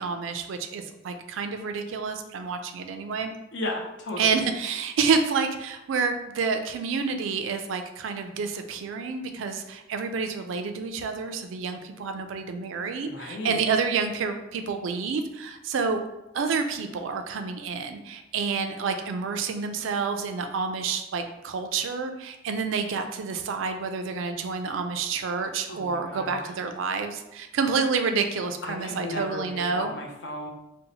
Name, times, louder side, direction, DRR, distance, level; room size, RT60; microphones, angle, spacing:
voice 1, 0.0-3.3 4.2-16.0 16.3-29.9, right 5 dB, 80° right, 7 dB, 0.4 m, -29 dB
voice 2, 3.5-4.5 13.0-13.6 25.7-26.5 28.6-30.5, left 1 dB, 65° left, 1 dB, 0.6 m, -35 dB
2.8 x 2.0 x 3.9 m, 0.94 s
head